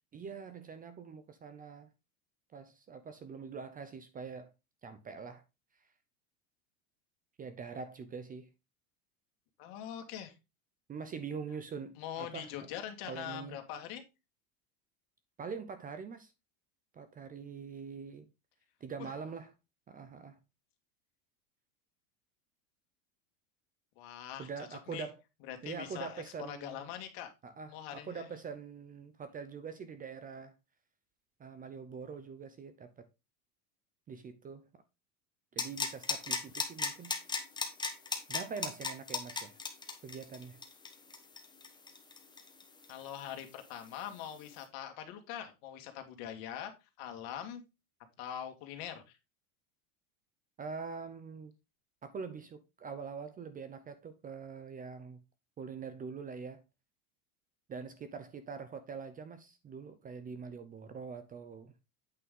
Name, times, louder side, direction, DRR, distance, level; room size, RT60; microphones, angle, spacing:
voice 1, 0.1-1.9 2.5-4.5 4.8-5.4 7.4-8.5 10.9-12.5 13.1-13.6 15.4-16.3 16.9-18.3 18.8-19.5 19.9-20.4 24.4-25.2 25.6-26.9 27.4-30.5 31.4-33.0 34.1-34.7 35.5-37.1 38.3-39.6 40.0-40.6 50.6-51.5 52.0-55.2 55.6-56.6 57.7-61.7, right 5 dB, 20° right, 0.6 m, -44 dB
voice 2, 9.6-10.3 12.0-14.0 19.0-19.1 24.0-25.1 25.5-26.2 26.5-27.3 27.7-28.3 42.9-46.7 47.0-47.6 48.2-49.2, left 10 dB, 55° left, 2.0 m, -43 dB
sound 1, 35.6-43.1 43.4-43.5, left 4 dB, 10° left, 1.2 m, -36 dB
8.6 x 5.5 x 3.8 m
supercardioid pair, 135°, 43 cm